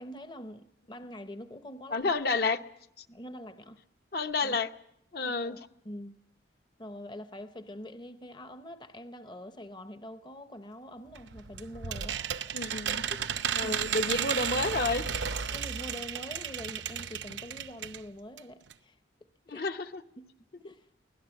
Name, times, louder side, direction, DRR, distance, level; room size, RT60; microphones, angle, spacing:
voice 1, 0.0-2.1 3.1-3.8 4.4-4.6 5.2-5.6 5.8-6.2 6.8-12.2 13.1-13.3 13.6-13.9 15.5-19.0 19.5-19.7 20.2-20.3 20.6-20.9, left 1 dB, 25° left, 0.7 m, -44 dB
voice 2, 1.9-2.6 3.0-3.1 4.1-4.7 5.1-5.6 12.5-13.0 13.5-15.0 19.5-20.0, left 3 dB, 55° left, 0.9 m, -30 dB
sound 1, 11.1-18.0 18.4-18.5 18.7-18.8, right 8 dB, 80° right, 0.8 m, -34 dB
24.0 x 17.0 x 7.1 m
head